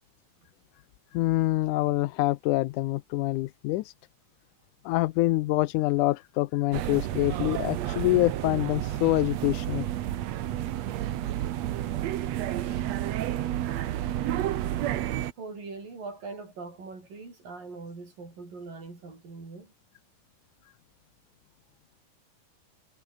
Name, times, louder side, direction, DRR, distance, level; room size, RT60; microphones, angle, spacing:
voice 1, 1.1-3.9 4.9-9.9 13.8-13.9, left 18 dB, 80° left, 2.0 m, -26 dB
sound 1, 6.7-15.3, right 13 dB, 65° right, 2.0 m, -30 dB
voice 2, 15.4-19.7, right 4 dB, 90° right, 9.5 m, -41 dB
omnidirectional pair, 3.8 m